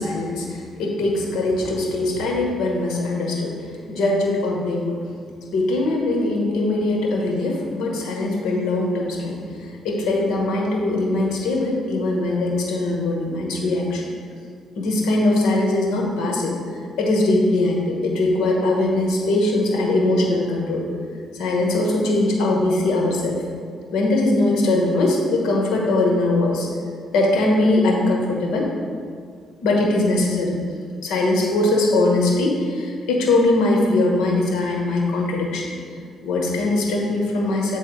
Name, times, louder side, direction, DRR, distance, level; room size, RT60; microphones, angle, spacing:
voice 1, 0.0-3.6 3.9-5.0 5.5-14.1 14.8-16.6 17.0-20.8 21.3-23.4 23.9-26.7 27.1-28.7 29.6-30.5 31.0-35.7 36.2-37.8, left 2 dB, 85° left, -1 dB, 1.2 m, -21 dB
8.0 x 3.4 x 4.5 m, 2.1 s
cardioid pair, 90°, 0 cm